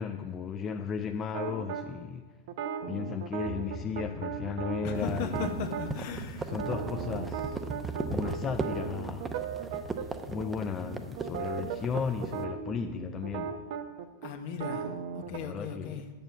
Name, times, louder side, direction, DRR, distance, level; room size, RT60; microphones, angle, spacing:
voice 1, 0.0-2.4 2.9-5.6 6.4-7.6 8.1-9.3 10.0-13.6 15.3-16.1, left 6 dB, 30° left, 0.4 m, -35 dB
sound 1, 1.3-1.9 2.5-5.9 6.5-10.1 10.4-10.5 10.8-15.4, right 7 dB, 60° right, 0.7 m, -37 dB
sound 2, 3.4-13.6, right 6 dB, 90° right, 2.7 m, -44 dB
voice 2, 4.8-6.5 14.2-16.1, left 6 dB, 55° left, 1.0 m, -37 dB
sound 3, 4.9-12.4, right 3 dB, 15° right, 0.7 m, -37 dB
7.6 x 6.9 x 5.8 m
hypercardioid pair, 100°, 0 cm